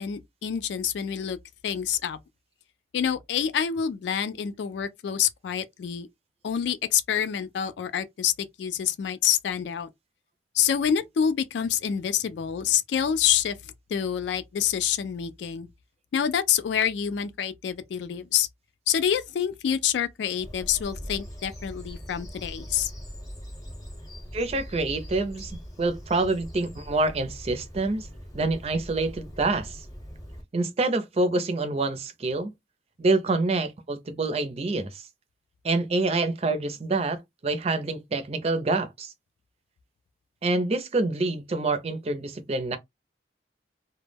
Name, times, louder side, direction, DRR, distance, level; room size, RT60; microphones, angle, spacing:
voice 1, 0.0-1.4 1.6-2.2 2.9-6.1 6.4-9.9 10.5-15.7 16.1-18.5 18.9-22.9, left 9 dB, 75° left, 0.3 m, -27 dB
Bird vocalization bird call bird song, 20.4-30.4, equal, 20° left, 0.7 m, -41 dB
voice 2, 24.3-28.1 28.3-29.8 30.5-32.5 33.0-35.0 35.6-39.1 40.4-42.8, right 2 dB, 35° right, 0.4 m, -26 dB
2.1 x 2.0 x 3.2 m
head